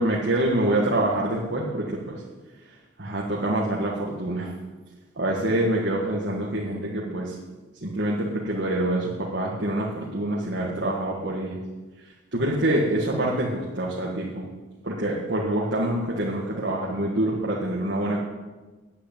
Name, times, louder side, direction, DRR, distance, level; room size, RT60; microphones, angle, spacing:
voice 1, 0.0-2.2 3.0-4.5 5.2-7.4 7.8-11.6 12.3-14.5 14.8-18.2, right 1 dB, 55° right, -4 dB, 1.8 m, -26 dB
9.6 x 8.2 x 9.0 m, 1.2 s
head